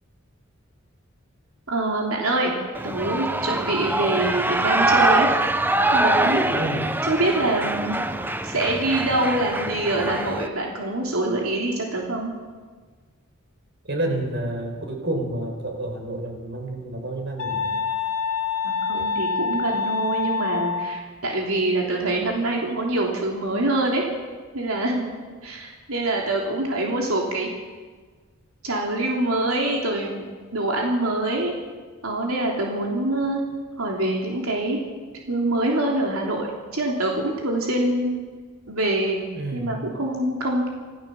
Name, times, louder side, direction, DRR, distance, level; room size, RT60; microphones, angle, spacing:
voice 1, 1.7-2.5 2.8-5.3 5.9-6.5 7.1-8.0 8.4-12.3 18.6-24.1 24.5-27.5 28.6-31.5 32.0-33.4 33.8-34.8 35.3-38.1 38.7-39.2 39.5-40.7, right 2 dB, 85° right, -1 dB, 3.3 m, -25 dB
Shout / Cheering, 2.7-10.5, right 2 dB, 10° right, 0.9 m, -23 dB
voice 2, 6.5-6.9 13.8-17.8 18.9-19.1 22.0-22.3 39.3-39.8, right 1 dB, 55° right, 3 dB, 4.9 m, -30 dB
sound 1, 17.4-21.0, left 5 dB, 70° left, 1.8 m, -26 dB
26.5 x 15.0 x 7.1 m, 1.4 s
head